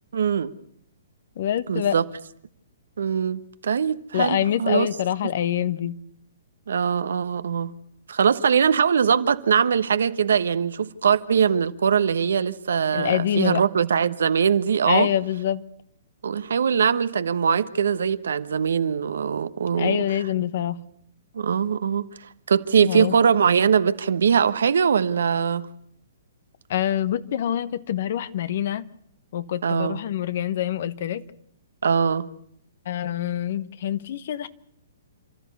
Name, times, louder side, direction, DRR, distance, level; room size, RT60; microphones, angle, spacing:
voice 1, 0.1-0.5 1.7-2.0 3.0-4.9 6.7-7.7 8.1-15.1 16.2-20.0 21.3-22.1 22.5-25.7 29.6-30.0 31.8-32.3, right 7 dB, 70° right, 1.1 m, -22 dB
voice 2, 1.4-1.9 4.1-6.0 12.9-13.6 14.9-15.6 19.7-20.8 22.8-23.1 26.7-28.9 29.3-31.2 32.8-34.5, left 11 dB, 55° left, 1.2 m, -25 dB
29.0 x 13.5 x 8.4 m
hypercardioid pair, 130°, 0 cm